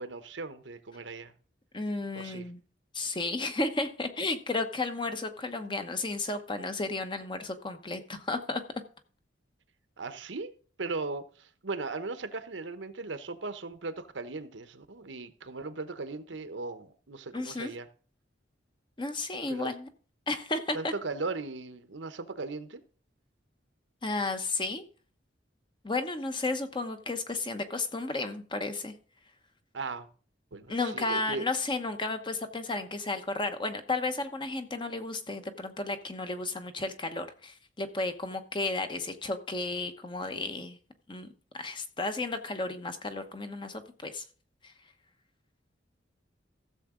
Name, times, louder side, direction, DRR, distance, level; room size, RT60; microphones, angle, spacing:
voice 1, 0.0-1.3 2.1-2.5 10.0-10.5 10.8-17.9 19.5-19.7 20.7-22.8 29.7-30.1 30.5-31.5, right 3 dB, 75° right, 0.9 m, -38 dB
voice 2, 1.7-2.6 2.9-8.6 17.3-17.7 19.0-19.9 20.3-20.9 24.0-24.8 25.8-28.9 30.7-40.8 41.1-41.3 41.6-44.2 44.6-44.7, left 2 dB, 25° left, 0.9 m, -33 dB
15.0 x 7.1 x 3.7 m
head